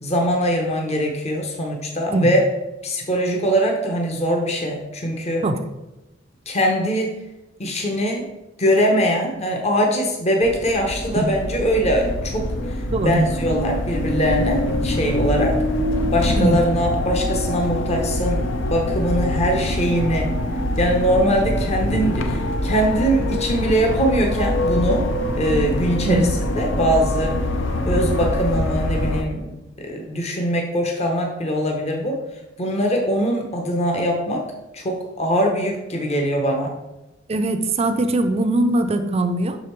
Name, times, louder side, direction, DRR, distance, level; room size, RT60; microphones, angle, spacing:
voice 1, 0.0-2.4 2.8-5.4 6.5-7.1 7.6-8.3 8.6-12.5 13.0-15.6 16.1-20.4 20.8-25.0 25.4-27.4 27.9-32.2 32.6-34.4 34.7-36.8, equal, 35° left, 2 dB, 0.9 m, -22 dB
sound 1, 10.4-29.2, left 1 dB, 70° left, 0.6 m, -24 dB
voice 2, 12.9-13.2 16.4-16.6 26.1-26.3 37.3-39.6, right 2 dB, 30° right, 7 dB, 0.5 m, -20 dB
6.1 x 5.0 x 4.5 m, 0.99 s
head